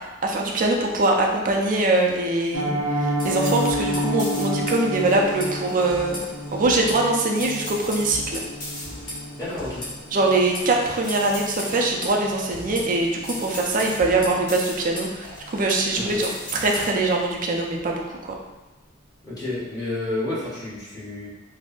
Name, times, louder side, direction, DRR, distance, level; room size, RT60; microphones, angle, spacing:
voice 1, 0.0-6.2 6.5-8.4 10.1-16.3 16.6-18.3, right 2 dB, 45° right, 0 dB, 0.4 m, -23 dB
Piano, 2.5-13.4 13.7-13.9 14.2-14.4 14.7-15.0 15.3-15.4, equal, 80° left, 0.6 m, -31 dB
sound 1, 3.2-16.9, left 1 dB, 45° left, 1.1 m, -37 dB
voice 2, 9.4-9.8 15.9-16.3 19.2-21.3, left 2 dB, 20° left, -11 dB, 1.4 m, -30 dB
3.6 x 2.0 x 2.4 m, 1.1 s
head